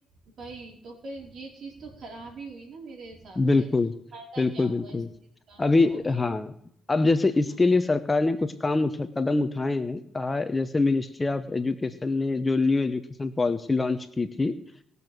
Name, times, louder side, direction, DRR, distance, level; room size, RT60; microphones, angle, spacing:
voice 1, 0.4-3.7 4.1-5.1 5.5-6.2 7.5-7.6, right 3 dB, 60° right, 1 dB, 4.7 m, -43 dB
voice 2, 3.4-3.9 4.4-5.1 5.6-6.5 6.9-14.6, left 3 dB, 20° left, 10 dB, 0.9 m, -24 dB
20.0 x 6.9 x 6.1 m, 0.68 s
cardioid pair, 90°, 0 cm